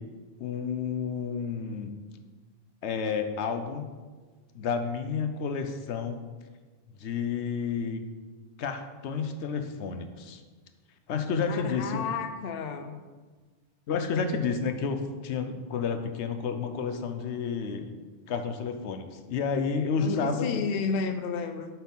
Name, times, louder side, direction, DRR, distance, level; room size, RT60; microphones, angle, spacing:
voice 1, 0.4-2.0 2.8-3.9 4.5-6.2 7.0-8.0 8.6-10.4 11.1-12.0 13.9-17.9 18.3-20.6, left 5 dB, 85° left, 7 dB, 1.0 m, -30 dB
voice 2, 11.5-13.0 20.0-21.7, left 5 dB, 65° left, 8 dB, 0.8 m, -32 dB
7.9 x 4.3 x 5.5 m, 1.4 s
omnidirectional pair, 1.1 m